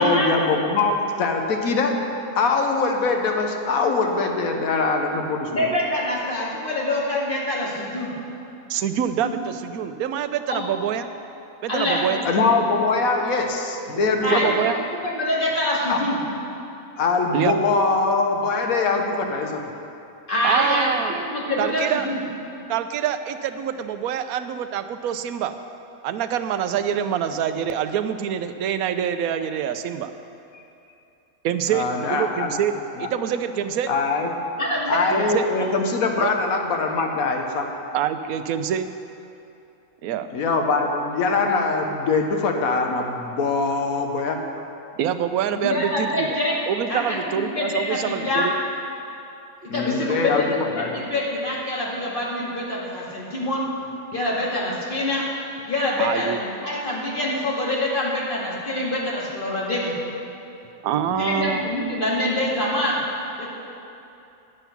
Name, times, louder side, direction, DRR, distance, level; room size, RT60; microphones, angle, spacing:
voice 1, 0.0-1.9 2.4-5.7 12.2-14.6 15.9-16.0 17.0-19.6 30.5-30.6 31.7-32.6 33.0-33.1 33.9-34.3 34.9-37.7 40.3-44.4 49.7-50.9 61.1-61.6, left 4 dB, 75° left, 3 dB, 1.3 m, -23 dB
voice 2, 5.5-8.1 9.2-9.3 10.5-10.6 11.7-12.3 14.2-14.6 15.1-16.2 20.3-20.9 21.2-22.2 34.6-35.3 45.5-46.6 46.9-48.5 49.6-53.7 54.1-55.3 55.7-59.9 61.2-63.0 63.4-63.5, left 1 dB, 35° left, -5 dB, 2.2 m, -25 dB
voice 3, 8.7-11.1 11.6-12.2 14.3-14.8 17.3-17.5 20.4-21.3 21.6-22.1 22.7-25.5 26.0-30.1 31.4-32.7 33.0-33.9 35.1-35.5 36.2-36.3 37.9-38.9 40.0-40.3 45.0-46.3 46.7-48.5 56.0-56.4 60.8-61.7, right 9 dB, 90° right, 10 dB, 1.1 m, -25 dB
11.0 x 8.0 x 5.8 m, 2.8 s
omnidirectional pair, 1.5 m